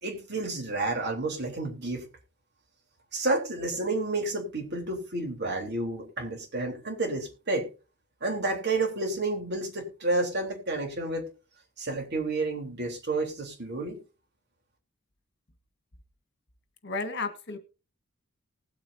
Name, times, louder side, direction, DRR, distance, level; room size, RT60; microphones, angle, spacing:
voice 1, 0.0-2.1 3.1-7.7 8.2-11.3 11.8-14.0, right 2 dB, 55° right, 2 dB, 3.6 m, -30 dB
voice 2, 16.8-17.6, left 3 dB, 55° left, 8 dB, 1.8 m, -32 dB
19.0 x 8.7 x 2.8 m, 0.32 s
head